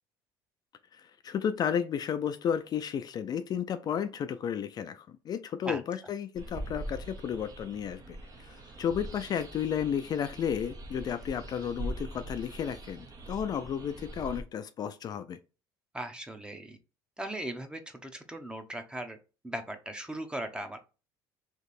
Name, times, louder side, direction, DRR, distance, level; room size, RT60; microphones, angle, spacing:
voice 1, 0.9-8.2 8.4-15.4, left 8 dB, 45° left, 0.4 m, -33 dB
sound 1, 6.4-14.4, right 1 dB, 40° right, 0.9 m, -42 dB
voice 2, 15.9-16.8 17.2-19.2 19.4-20.8, right 1 dB, 10° right, 0.8 m, -38 dB
3.2 x 3.0 x 4.2 m
supercardioid pair, 90°, 10 cm